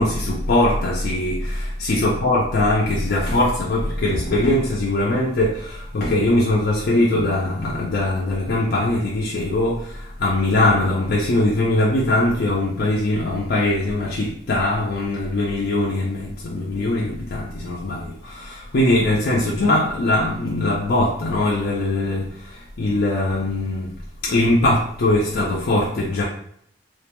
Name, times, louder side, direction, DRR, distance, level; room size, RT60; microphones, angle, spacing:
voice 1, 0.0-23.9 24.2-26.2, left 1 dB, 55° left, -5 dB, 0.4 m, -21 dB
2.5 x 2.2 x 2.9 m, 0.68 s
head